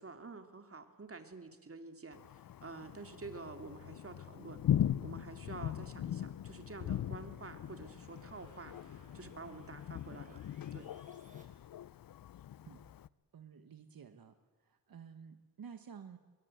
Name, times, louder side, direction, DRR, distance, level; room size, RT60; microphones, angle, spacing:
voice 1, 0.0-4.6 5.0-10.4 10.7-10.9, right 3 dB, 40° right, 7 dB, 2.6 m, -49 dB
Thunder, 2.1-13.1, left 10 dB, 70° left, 0.6 m, -40 dB
sound 1, 5.2-11.4, right 1 dB, 20° right, 6.9 m, -68 dB
sound 2, 6.2-12.6, left 3 dB, 55° left, 4.5 m, -65 dB
voice 2, 13.3-16.2, right 7 dB, 70° right, 9 dB, 1.3 m, -52 dB
22.5 x 21.5 x 7.9 m, 1.4 s
cardioid pair, 70°, 36 cm